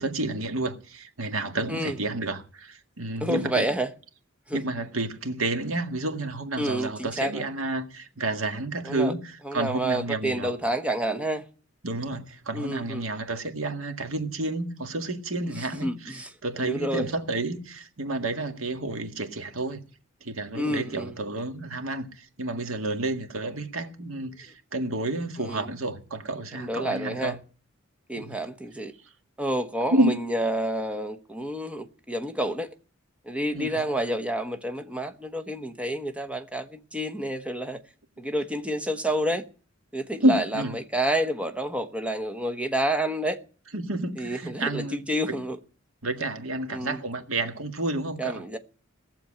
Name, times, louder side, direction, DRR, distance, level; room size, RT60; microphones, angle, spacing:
voice 1, 0.0-3.7 4.5-10.5 11.8-19.8 20.2-27.4 28.2-28.3 29.9-30.1 33.5-33.8 40.2-40.8 43.7-45.0 46.0-48.6, right 2 dB, 85° right, 1.9 m, -30 dB
voice 2, 3.2-3.9 4.5-4.6 6.6-7.5 8.8-9.1 9.4-11.4 12.5-13.0 15.5-16.3 16.6-17.1 20.5-21.1 25.4-25.7 26.5-27.4 28.1-28.9 29.4-32.7 33.2-37.8 38.2-39.4 39.9-43.4 44.2-45.6 46.7-47.0 48.2-48.6, right 1 dB, 5° right, 1.1 m, -29 dB
18.0 x 7.2 x 8.7 m
head